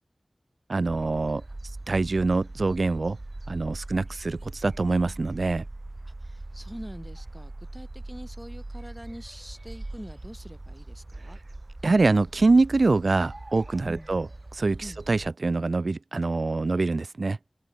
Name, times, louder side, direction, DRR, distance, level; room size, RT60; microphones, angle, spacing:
voice 1, 0.7-1.4 1.9-3.2 3.5-5.6 11.8-14.3 14.5-17.4, right 3 dB, 75° right, 0.9 m, -24 dB
sound 1, 0.9-15.3, right 2 dB, 45° right, 1.8 m, -41 dB
voice 2, 6.0-11.4 13.8-14.1 14.8-15.0, equal, 5° right, 6.6 m, -44 dB
open air
wide cardioid pair, 60°, 0 cm